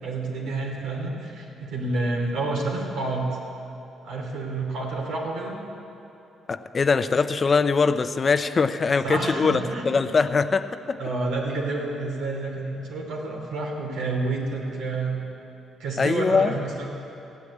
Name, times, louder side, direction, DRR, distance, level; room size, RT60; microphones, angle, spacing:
voice 1, 0.0-3.3 4.0-5.6 9.0-9.8 10.2-10.3 11.0-15.2 15.8-16.9, right 3 dB, 85° right, -1 dB, 3.1 m, -29 dB
voice 2, 6.5-11.0 16.0-16.6, left 4 dB, 35° left, 11 dB, 0.6 m, -22 dB
15.5 x 9.5 x 8.6 m, 2.9 s
cardioid pair, 90°, 0 cm